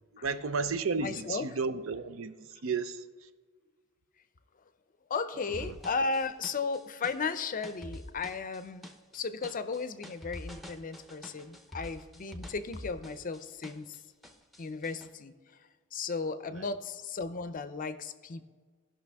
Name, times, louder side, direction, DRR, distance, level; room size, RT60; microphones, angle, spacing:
voice 1, 0.2-2.4 2.6-3.0 5.6-5.7 16.5-16.7, right 4 dB, 75° right, 0.6 m, -32 dB
voice 2, 1.0-1.5 5.1-8.9 9.1-14.0 14.6-15.3 15.9-18.4, left 4 dB, 40° left, 0.5 m, -35 dB
sound 1, 5.5-14.0 14.2-15.1, left 1 dB, ahead, 0.7 m, -46 dB
16.5 x 5.7 x 3.5 m
head